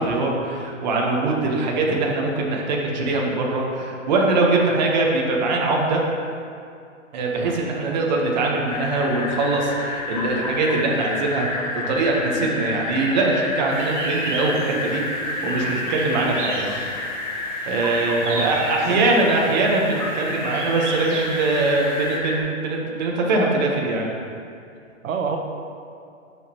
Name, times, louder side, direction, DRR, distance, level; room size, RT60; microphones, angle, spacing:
voice 1, 0.0-6.0 7.1-11.5 11.9-16.7 17.7-24.2, right 2 dB, 35° right, -1 dB, 0.9 m, -22 dB
sound 1, 8.7-22.4, left 2 dB, 30° left, 0.5 m, -30 dB
sound 2, 13.7-22.2, right 3 dB, 65° right, 1.4 m, -35 dB
voice 2, 18.2-18.6 18.9-19.0 25.0-25.4, right 6 dB, 85° right, 4 dB, 0.9 m, -27 dB
9.3 x 6.1 x 2.9 m, 2.4 s
hypercardioid pair, 170°, 39 cm